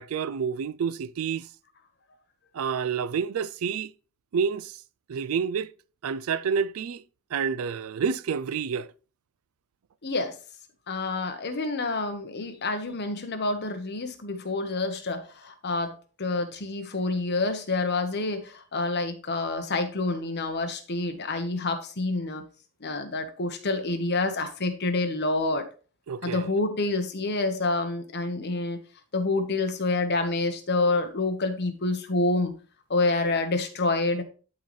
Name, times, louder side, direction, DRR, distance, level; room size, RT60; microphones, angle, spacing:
voice 1, 0.0-1.5 2.5-3.9 4.3-4.8 5.1-5.7 6.0-7.0 7.3-8.9 26.1-26.5, right 6 dB, 80° right, 0.4 m, -28 dB
voice 2, 10.0-10.4 10.9-22.4 22.8-25.7 26.2-28.8 29.1-32.5 32.9-34.2, left 2 dB, 50° left, 1.1 m, -28 dB
11.5 x 4.0 x 3.1 m
head